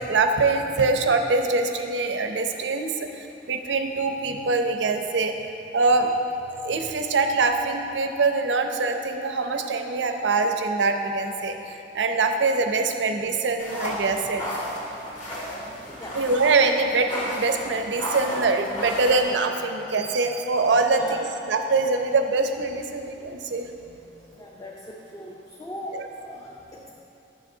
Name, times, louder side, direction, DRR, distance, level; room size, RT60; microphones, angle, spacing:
voice 1, 0.0-5.4 5.7-6.1 6.5-14.4 16.1-23.7 25.9-26.1, right 3 dB, 90° right, 6 dB, 0.5 m, -24 dB
sound 1, 13.6-19.2, equal, 40° left, 1.7 m, -33 dB
voice 2, 20.9-21.2 24.4-26.9, equal, 20° left, -3 dB, 0.5 m, -39 dB
9.2 x 7.3 x 2.7 m, 2.9 s
head